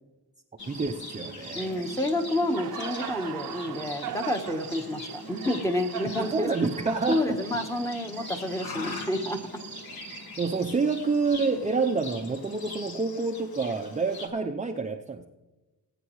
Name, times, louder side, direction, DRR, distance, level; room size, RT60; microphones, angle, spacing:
Livestock farm animals working animals, 0.6-14.3, left 3 dB, 65° left, 1.9 m, -42 dB
Cricket, 0.6-10.7, right 10 dB, 60° right, 0.8 m, -41 dB
voice 1, 0.7-1.8 6.2-7.4 10.4-15.2, right 4 dB, 20° right, 3 dB, 0.7 m, -28 dB
voice 2, 1.5-6.5 7.1-9.4, left 1 dB, 10° left, 4 dB, 1.2 m, -29 dB
18.0 x 9.1 x 3.2 m, 1.1 s
cardioid pair, 110°, 39 cm